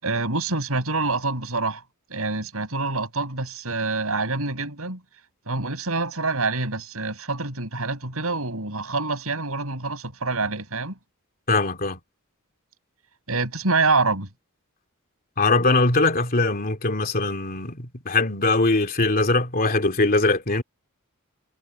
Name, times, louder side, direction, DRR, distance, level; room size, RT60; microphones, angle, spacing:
voice 1, 0.0-1.8 2.1-5.0 5.5-10.9 13.3-14.3, right 3 dB, 75° right, 6.6 m, -26 dB
voice 2, 11.5-12.0 15.4-20.6, left 3 dB, 45° left, 3.0 m, -21 dB
head